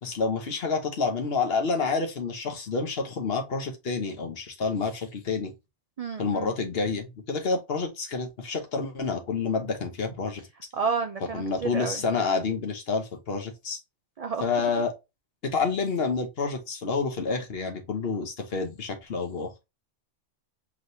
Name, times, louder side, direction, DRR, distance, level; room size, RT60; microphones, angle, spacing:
voice 1, 0.0-5.5 6.2-10.4 11.3-13.8 14.4-14.9 15.4-19.5, left 4 dB, 55° left, 1.1 m, -28 dB
voice 2, 6.0-6.5 10.7-12.0 14.2-14.4, right 5 dB, 65° right, 0.3 m, -30 dB
4.9 x 3.1 x 2.6 m
omnidirectional pair, 1.2 m